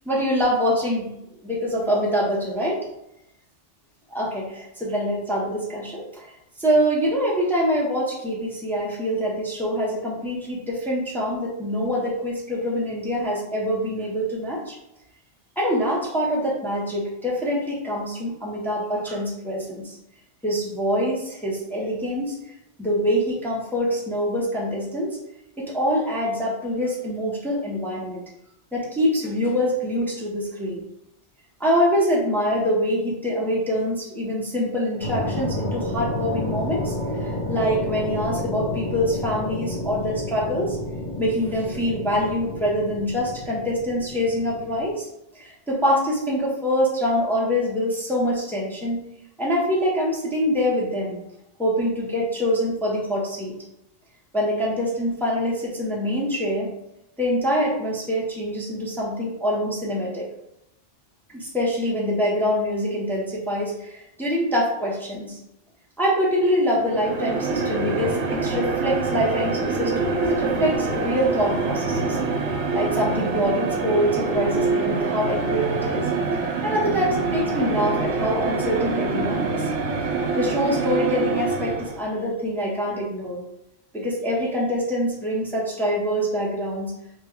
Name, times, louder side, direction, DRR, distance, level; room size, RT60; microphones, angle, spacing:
voice 1, 0.1-1.1 1.4-2.8 4.1-6.3 6.6-14.7 15.6-20.0 20.4-22.3 22.8-25.2 25.6-28.2 28.7-30.8 31.6-36.9 37.2-40.8 41.2-45.1 45.3-49.0 49.4-51.2 51.6-53.6 54.3-56.7 57.2-60.3 61.3-65.4 66.0-72.2 72.7-76.1 76.6-79.7 80.4-83.4 83.9-86.9, equal, 5° left, -4 dB, 0.5 m, -25 dB
sound 1, 35.0-44.9, left 1 dB, 30° left, 1.0 m, -30 dB
sound 2, 66.7-82.1, right 4 dB, 75° right, 0.9 m, -25 dB
2.9 x 2.2 x 3.5 m, 0.85 s
omnidirectional pair, 1.2 m